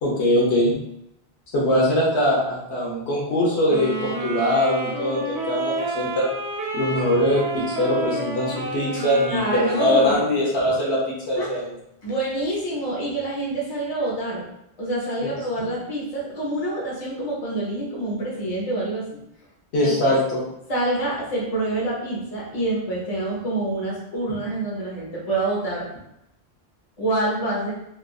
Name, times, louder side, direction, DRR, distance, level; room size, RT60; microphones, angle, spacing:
voice 1, 0.0-0.7 1.5-6.3 6.7-11.7 15.6-15.8 19.7-20.4, left 1 dB, 80° left, -5 dB, 1.1 m, -22 dB
sound 1, 3.7-10.3, right 2 dB, 85° right, 0.9 m, -30 dB
voice 2, 9.3-10.2 10.6-10.7 11.4-11.5 12.0-14.4 14.8-19.2 19.8-20.1 20.7-25.9 27.0-27.7, right 2 dB, 40° left, -5 dB, 0.9 m, -26 dB
3.1 x 2.4 x 2.3 m, 0.80 s
omnidirectional pair, 1.1 m